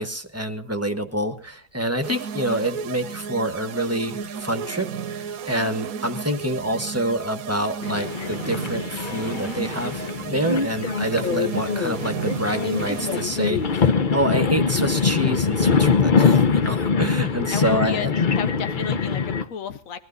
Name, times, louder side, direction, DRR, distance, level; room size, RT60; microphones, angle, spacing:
voice 1, 0.0-18.1, right 1 dB, 10° right, 7 dB, 1.1 m, -27 dB
sound 1, 2.0-13.6, right 7 dB, 85° right, 1.3 m, -34 dB
sound 2, 7.8-19.4, left 5 dB, 40° left, 0.9 m, -23 dB
voice 2, 17.5-18.1 18.4-20.1, left 7 dB, 75° left, 11 dB, 1.4 m, -32 dB
21.0 x 12.5 x 4.0 m, 0.39 s
omnidirectional pair, 1.4 m